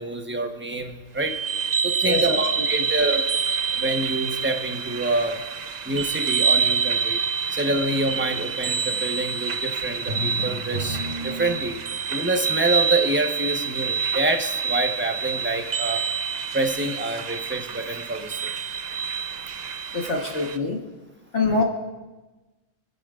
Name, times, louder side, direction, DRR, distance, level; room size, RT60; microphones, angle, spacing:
voice 1, 0.0-1.3 1.8-3.3 3.7-5.4 5.8-7.2 7.5-11.8 12.1-16.0 16.5-18.5 21.4-21.6, right 2 dB, 10° right, 3 dB, 0.9 m, -27 dB
sound 1, 1.2-20.6, right 6 dB, 70° right, 0.4 m, -27 dB
voice 2, 2.0-2.4 19.9-20.8 21.3-21.6, left 3 dB, 60° left, 1 dB, 1.6 m, -24 dB
Drum, 10.1-12.1, equal, 50° right, 3.3 m, -32 dB
28.5 x 10.5 x 2.5 m, 1.2 s
omnidirectional pair, 1.4 m